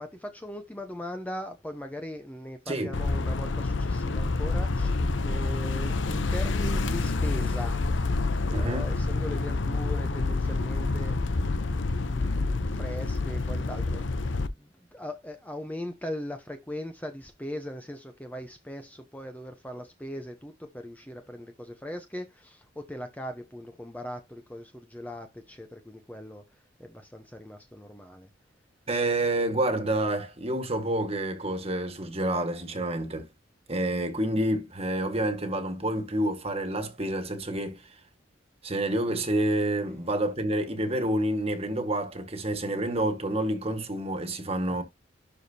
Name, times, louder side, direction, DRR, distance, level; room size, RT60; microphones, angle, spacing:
voice 1, 0.0-7.9 8.5-11.2 11.9-26.4 26.8-28.3 44.7-44.8, equal, 10° left, 0.8 m, -39 dB
voice 2, 2.7-3.0 8.5-8.9 28.9-33.3 33.7-37.9 38.6-44.8, right 1 dB, 30° right, 1.7 m, -28 dB
sound 1, 2.9-14.5, left 3 dB, 80° left, 0.8 m, -28 dB
12.0 x 4.9 x 2.8 m
head